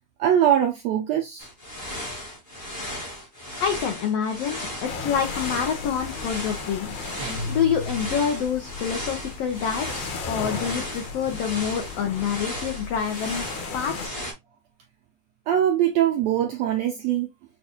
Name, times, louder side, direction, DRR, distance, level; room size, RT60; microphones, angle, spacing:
voice 1, 0.2-1.5 15.5-17.3, right 10 dB, 85° right, 1.5 m, -22 dB
sound 1, 1.4-14.3, left 1 dB, 50° left, 0.5 m, -36 dB
voice 2, 3.6-6.9 7.5-13.5 13.7-14.2, left 7 dB, 80° left, 1.4 m, -27 dB
sound 2, 4.8-14.1, left 4 dB, 65° left, 2.2 m, -36 dB
sound 3, 7.2-8.5, left 2 dB, 55° right, 1.0 m, -34 dB
6.4 x 2.4 x 2.8 m
omnidirectional pair, 3.7 m